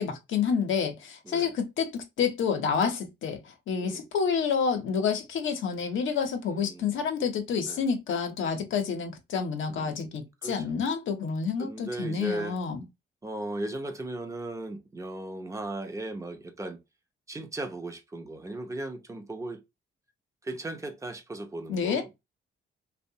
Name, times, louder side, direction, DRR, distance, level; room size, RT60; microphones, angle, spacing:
voice 1, 0.0-3.4 3.7-12.8 21.7-22.0, left 6 dB, 75° left, 0.7 m, -29 dB
voice 2, 6.5-7.1 7.6-7.8 9.7-10.7 11.6-12.6 13.2-16.8 17.3-19.6 20.4-22.1, right 1 dB, 15° right, 0.6 m, -37 dB
2.7 x 2.1 x 2.7 m
cardioid pair, 105°, 20 cm